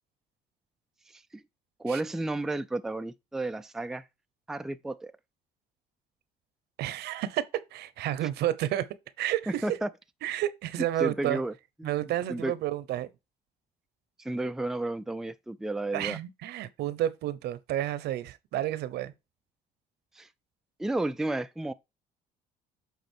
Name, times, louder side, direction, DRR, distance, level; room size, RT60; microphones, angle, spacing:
voice 1, 1.8-4.0 4.5-5.1 9.6-9.9 11.0-11.5 11.8-12.5 14.2-16.2 20.2-20.3 20.8-21.7, right 2 dB, 5° right, 0.4 m, -32 dB
voice 2, 6.8-8.9 9.2-9.6 10.2-11.4 11.8-13.1 15.9-19.1, right 13 dB, 75° right, 0.9 m, -31 dB
8.3 x 4.0 x 4.5 m
cardioid pair, 110°, 17 cm